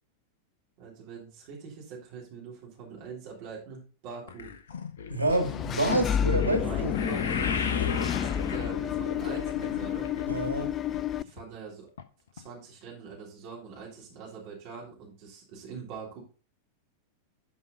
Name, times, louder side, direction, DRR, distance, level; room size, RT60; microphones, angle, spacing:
voice 1, 0.8-4.5 6.3-7.2 8.1-10.1 11.2-11.9 12.3-16.2, right 5 dB, 45° right, 3.4 m, -43 dB
sound 1, 4.3-10.7 10.9-11.4 12.0-12.1 12.4-12.5, left 6 dB, 65° left, 0.9 m, -35 dB
voice 2, 5.1-7.0 7.7-7.9 10.3-10.7, right 1 dB, 90° left, 1.7 m, -28 dB
Engine / Mechanisms, 5.3-11.2, left 9 dB, 25° left, 0.3 m, -30 dB
11.0 x 5.4 x 4.0 m
figure-of-eight pair, 90°, 0 cm